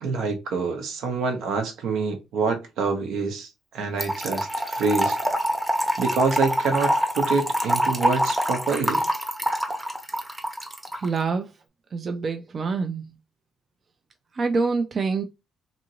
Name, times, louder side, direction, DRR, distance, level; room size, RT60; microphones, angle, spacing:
voice 1, 0.0-3.5 3.7-5.2 6.0-9.0, right 4 dB, 85° right, 0.9 m, -26 dB
Trickle dribble / Fill (with liquid), 4.0-11.1, equal, 10° right, 0.7 m, -25 dB
voice 2, 10.9-11.5 11.9-13.0 14.3-15.2, right 4 dB, 45° right, 0.4 m, -26 dB
2.7 x 2.5 x 2.9 m
cardioid pair, 90°, 0 cm